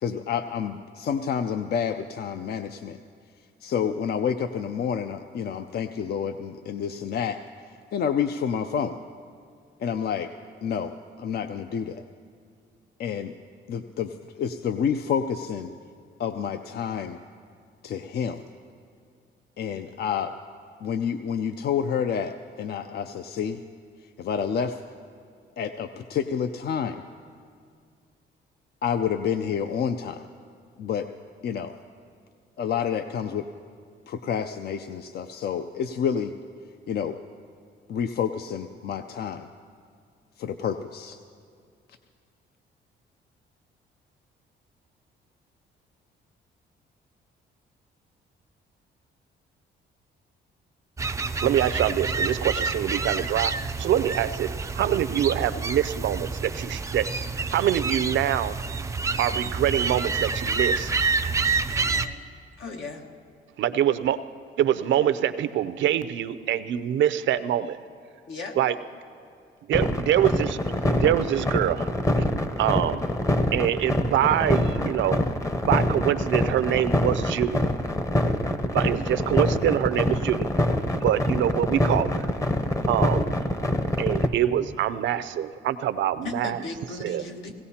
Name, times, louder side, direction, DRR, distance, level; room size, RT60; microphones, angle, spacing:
voice 1, 0.0-3.0 3.6-7.4 7.9-9.0 9.8-10.3 10.6-12.0 13.0-13.3 13.7-15.7 16.2-17.2 17.8-18.4 19.6-20.3 20.8-23.6 24.2-24.8 25.6-27.0 28.8-30.2 30.8-31.1 31.4-31.7 32.6-33.5 34.1-36.3 36.9-37.2 37.9-39.5 40.4-41.2, left 7 dB, 55° left, 9 dB, 0.5 m, -29 dB
sound 1, 51.0-62.1, right 4 dB, 15° right, 0.4 m, -28 dB
voice 2, 51.4-53.5 53.8-54.5 54.7-57.0 57.5-58.6 59.2-60.9 63.6-64.2 64.6-67.6 68.6-68.7 69.7-71.9 72.6-73.0 73.5-75.2 75.6-77.7 78.7-80.5 81.0-82.3 82.9-83.3 84.0-86.6 87.0-87.2, right 11 dB, 70° right, 12 dB, 0.5 m, -24 dB
voice 3, 61.7-62.2 62.6-63.1 68.3-68.6 86.2-87.5, left 3 dB, 75° left, 2 dB, 1.4 m, -37 dB
sound 2, 69.7-84.3, left 1 dB, 15° left, 0.7 m, -24 dB
18.0 x 16.5 x 2.8 m, 2.3 s
cardioid pair, 90°, 20 cm